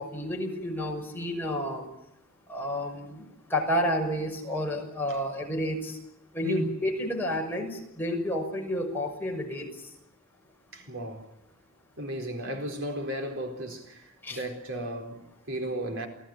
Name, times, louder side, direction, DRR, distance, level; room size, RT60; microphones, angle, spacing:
voice 1, 0.0-1.9 2.5-6.0 6.3-9.7 14.2-14.4, equal, 10° left, 6.2 m, -30 dB
voice 2, 10.7-11.3 12.0-16.1, right 1 dB, 65° right, 4.2 m, -35 dB
29.5 x 17.5 x 9.3 m
head